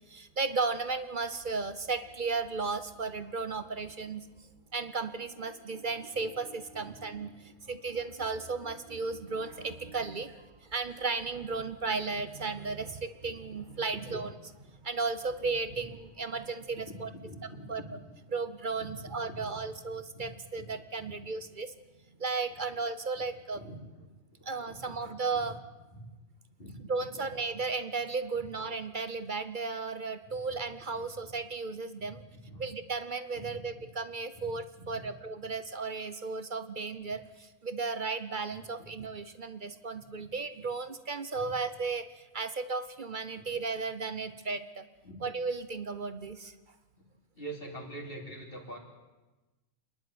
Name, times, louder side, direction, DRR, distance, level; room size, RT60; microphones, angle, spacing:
voice 1, 0.0-17.1 17.4-18.0 18.3-21.7 22.2-23.6 24.4-25.6 26.8-32.2 32.6-44.8 45.2-46.5, right 4 dB, 40° right, 11 dB, 0.9 m, -35 dB
voice 2, 16.9-17.8 18.8-18.9 19.2-19.4 20.1-20.2 23.5-23.8 24.4-24.7 26.6-26.7 32.5-32.6 33.4-33.6 34.9-35.0 41.4-41.5 45.1-45.2 47.4-48.8, right 1 dB, 40° left, 0 dB, 3.7 m, -44 dB
27.0 x 11.0 x 9.4 m, 1.2 s
omnidirectional pair, 1.5 m